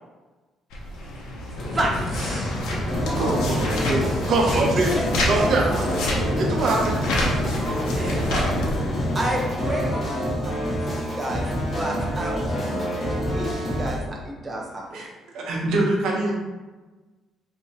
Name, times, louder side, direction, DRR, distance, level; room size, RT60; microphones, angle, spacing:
sound 1, 0.7-8.8, left 1 dB, 90° left, 0.9 m, -29 dB
sound 2, 1.6-9.6, left 1 dB, 55° left, 0.9 m, -30 dB
voice 1, 1.7-2.5 4.5-4.7 4.9-5.0 5.4-5.5 7.9-8.3 9.1-11.5 11.8-15.0, right 1 dB, 20° right, -1 dB, 0.5 m, -31 dB
sound 3, 2.9-14.0, equal, 25° left, 1.4 m, -27 dB
voice 2, 3.0-3.6 3.9-4.3 14.9-15.1 15.3-16.3, right 2 dB, 70° right, -2 dB, 1.0 m, -25 dB
voice 3, 4.3-4.9 5.3-5.8 6.4-7.4 8.0-8.5, right 3 dB, 50° right, 0 dB, 0.8 m, -24 dB
3.3 x 3.0 x 4.3 m, 1.2 s
cardioid pair, 140°, 0 cm